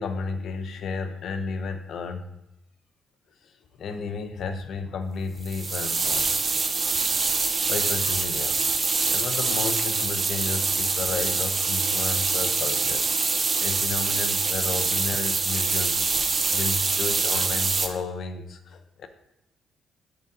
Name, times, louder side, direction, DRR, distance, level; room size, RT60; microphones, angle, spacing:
voice 1, 0.0-2.2 3.8-6.3 7.3-8.6 9.1-16.1 16.5-19.1, left 4 dB, 65° left, 8 dB, 0.7 m, -33 dB
sound 1, 5.4-17.9, right 4 dB, 35° right, 0.7 m, -25 dB
10.5 x 3.8 x 2.7 m, 0.90 s
cardioid pair, 90°, 0 cm